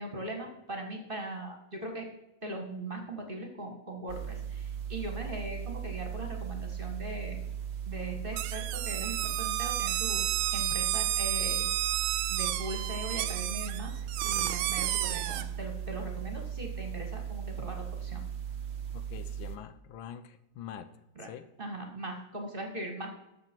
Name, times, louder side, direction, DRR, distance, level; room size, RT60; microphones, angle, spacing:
voice 1, 0.0-2.1 2.4-7.4 7.8-10.2 10.5-11.7 12.3-18.2 21.2-21.3 21.6-23.1, right 1 dB, 30° right, 3 dB, 1.4 m, -40 dB
sound 1, 4.1-19.6, right 9 dB, 60° right, 0.6 m, -38 dB
sound 2, 8.3-15.4, right 13 dB, 80° right, 1.4 m, -31 dB
voice 2, 18.9-20.9 21.2-21.4, left 9 dB, 75° left, 11 dB, 1.4 m, -45 dB
13.0 x 6.7 x 4.4 m, 0.90 s
omnidirectional pair, 2.3 m